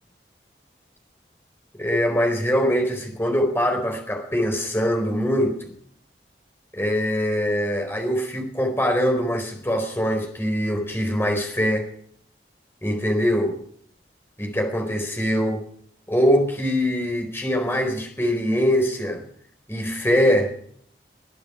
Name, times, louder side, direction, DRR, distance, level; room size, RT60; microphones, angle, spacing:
voice 1, 1.7-5.7 6.7-11.9 12.8-13.5 14.4-15.6 16.1-19.2 19.7-20.5, equal, 15° left, 3 dB, 4.3 m, -23 dB
21.5 x 9.4 x 6.1 m, 0.63 s
head